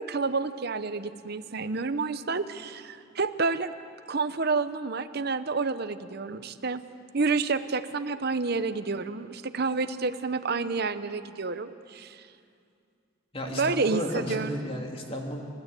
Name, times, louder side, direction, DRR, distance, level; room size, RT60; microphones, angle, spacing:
voice 1, 0.0-3.7 4.1-6.8 7.1-12.2 13.5-14.6, right 4 dB, 55° right, 11 dB, 0.9 m, -29 dB
voice 2, 13.3-15.4, equal, 30° left, 0 dB, 2.9 m, -33 dB
29.5 x 14.5 x 8.3 m, 2.4 s
head